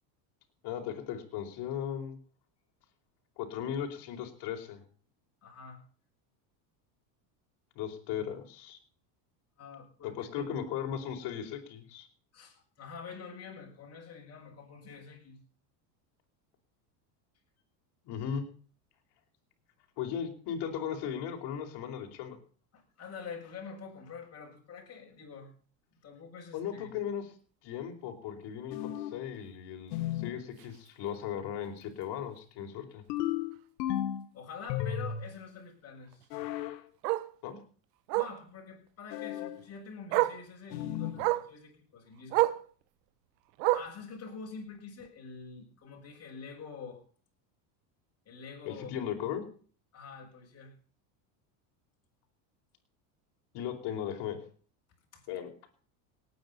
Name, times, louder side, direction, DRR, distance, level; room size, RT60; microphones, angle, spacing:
voice 1, 0.6-2.2 3.4-4.8 7.7-8.8 10.0-12.1 18.0-18.5 20.0-22.4 26.5-27.3 27.6-33.0 37.4-37.6 48.6-49.4 53.5-54.4 55.3-55.5, left 8 dB, 55° left, 3 dB, 4.8 m, -37 dB
voice 2, 5.4-5.8 9.6-10.5 12.3-15.4 22.7-25.5 26.0-26.9 34.3-36.3 38.1-42.5 43.7-47.0 48.3-48.9 49.9-50.7 55.1-55.3, left 5 dB, 30° left, 0 dB, 7.3 m, -46 dB
sound 1, 28.7-29.3 29.9-30.4 33.1-34.3 34.7-35.4 36.3-36.8 39.1-39.6 40.7-41.2, left 11 dB, 80° left, 2.1 m, -34 dB
Bark, 30.6-30.8 31.2-31.3 31.6-31.7 32.0-32.1 33.5-33.6 36.1-36.2 37.0-37.3 38.1-38.4 39.6-39.7 40.1-40.4 41.2-41.5 42.3-42.6 43.6-44.0 45.0-45.1, right 17 dB, 80° right, 1.3 m, -28 dB
18.5 x 9.7 x 5.6 m, 0.43 s
supercardioid pair, 130°, 49 cm